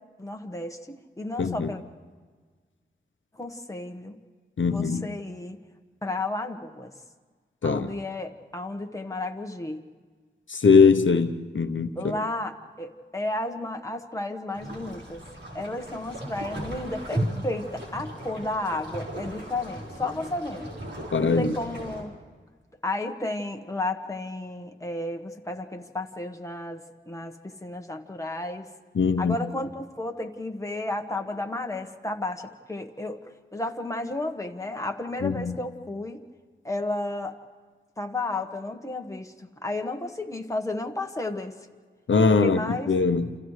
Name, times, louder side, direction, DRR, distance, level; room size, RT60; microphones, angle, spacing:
voice 1, 0.2-1.8 3.3-4.2 4.6-5.6 6.0-6.9 7.6-9.8 11.9-15.2 15.5-20.7 21.2-22.1 22.8-28.7 29.2-33.2 33.5-36.2 36.6-37.3 38.0-41.5 42.4-42.9, left 2 dB, 15° left, 1.3 m, -32 dB
voice 2, 1.4-1.7 4.6-5.1 7.6-7.9 10.5-11.3 11.5-12.1 21.1-21.5 29.0-29.4 35.2-35.6 42.1-43.3, left 5 dB, 70° left, 0.8 m, -21 dB
sound 1, 14.5-22.0, right 1 dB, 65° right, 5.1 m, -36 dB
29.0 x 28.5 x 3.3 m
wide cardioid pair, 80°, 20 cm